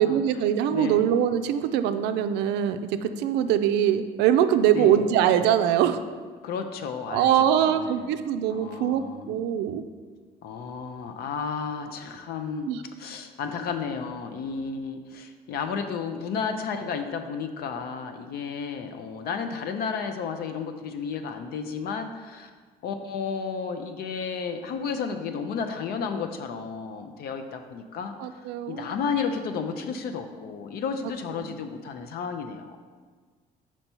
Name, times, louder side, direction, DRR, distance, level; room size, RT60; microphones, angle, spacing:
voice 1, 0.0-6.0 7.1-9.0 9.3-9.8 12.7-12.8 28.2-28.9, right 10 dB, 90° right, 10 dB, 0.4 m, -23 dB
voice 2, 0.7-1.0 4.7-5.0 6.4-8.1 8.5-9.3 10.4-12.7 13.0-22.5 22.8-28.1 28.7-32.8, left 5 dB, 65° left, 6 dB, 0.5 m, -32 dB
5.4 x 4.4 x 4.4 m, 1.5 s
cardioid pair, 110°, 17 cm